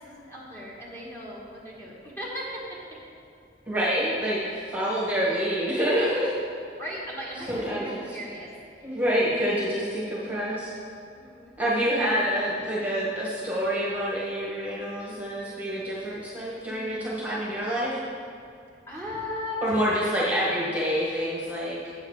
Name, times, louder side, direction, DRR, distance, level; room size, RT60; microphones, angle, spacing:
voice 1, 0.0-2.5 6.8-8.5 8.8-8.9 11.1-11.9 16.6-17.1 18.9-19.8, left 1 dB, 15° left, -6 dB, 1.6 m, -37 dB
voice 2, 3.7-6.3 7.5-8.2 8.8-10.7 11.6-18.0 19.6-21.9, equal, 10° right, -8 dB, 1.4 m, -27 dB
8.4 x 4.8 x 6.5 m, 2.5 s
head